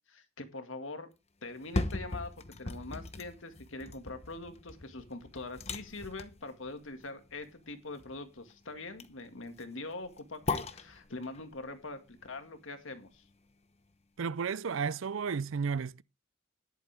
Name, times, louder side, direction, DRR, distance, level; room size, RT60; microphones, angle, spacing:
voice 1, 0.1-1.1 1.4-2.3 2.6-13.2, left 2 dB, 75° left, 2.0 m, -43 dB
sound 1, 1.5-13.5 13.9-14.0, left 3 dB, 30° left, 1.0 m, -40 dB
voice 2, 14.2-16.0, right 5 dB, 75° right, 0.5 m, -33 dB
13.0 x 11.0 x 3.4 m
head